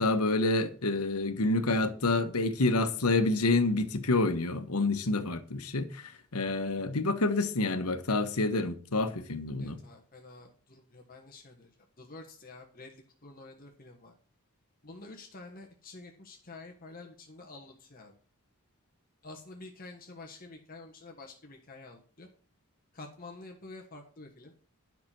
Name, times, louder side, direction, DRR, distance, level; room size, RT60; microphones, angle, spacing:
voice 1, 0.0-9.8, left 2 dB, 90° left, 1.3 m, -28 dB
voice 2, 9.6-11.7 12.0-14.1 14.8-18.1 19.2-22.3 22.9-24.5, left 3 dB, 40° left, 1.4 m, -49 dB
10.5 x 5.9 x 6.1 m
head